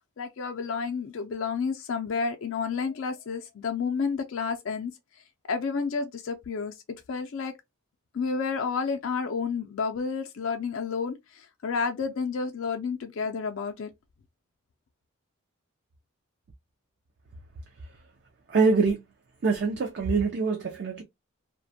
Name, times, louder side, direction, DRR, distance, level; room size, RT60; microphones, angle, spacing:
voice 1, 0.2-4.9 5.5-6.7 7.1-7.5 8.1-13.9, left 5 dB, 65° left, 0.4 m, -30 dB
voice 2, 18.5-19.0 19.4-21.0, right 4 dB, 50° right, 0.4 m, -24 dB
2.4 x 2.2 x 2.6 m
head